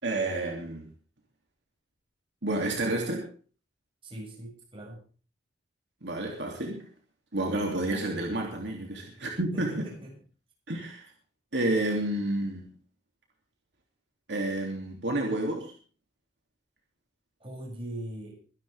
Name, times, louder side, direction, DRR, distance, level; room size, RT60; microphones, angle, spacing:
voice 1, 0.0-0.9 2.4-3.2 6.0-6.8 7.3-9.8 10.7-11.1 11.5-12.7 14.3-15.7, right 1 dB, 70° right, 0 dB, 3.1 m, -30 dB
voice 2, 4.0-5.0 9.5-10.1 17.4-18.4, right 1 dB, 30° right, -1 dB, 7.9 m, -40 dB
24.0 x 10.5 x 3.7 m, 0.40 s
head